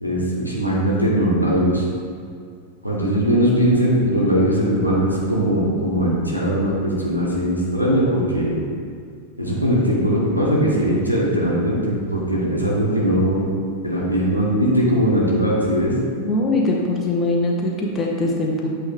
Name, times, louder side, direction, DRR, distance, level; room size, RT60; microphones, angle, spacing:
voice 1, 0.0-1.8 2.8-8.6 9.4-13.4 13.8-15.9, equal, 90° left, -5 dB, 1.2 m, -20 dB
voice 2, 16.2-18.7, left 2 dB, 20° left, -2 dB, 0.8 m, -22 dB
8.1 x 3.3 x 3.5 m, 2.3 s
figure-of-eight pair, 90°, 0 cm